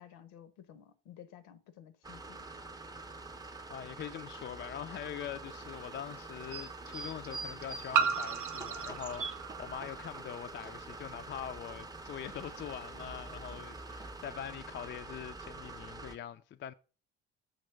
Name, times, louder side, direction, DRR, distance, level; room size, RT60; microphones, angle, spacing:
voice 1, 0.0-2.5, left 10 dB, 70° left, 0.9 m, -54 dB
sound 1, 2.0-16.2, right 3 dB, 10° right, 0.6 m, -46 dB
voice 2, 3.7-16.7, left 10 dB, 35° left, 0.4 m, -43 dB
sound 2, 4.0-4.1 5.7-5.8 7.9-10.4, right 7 dB, 65° right, 0.7 m, -34 dB
sound 3, 5.4-10.0 10.3-11.4 11.7-14.3, right 4 dB, 40° right, 0.9 m, -47 dB
6.4 x 3.0 x 5.6 m
hypercardioid pair, 60°, 35 cm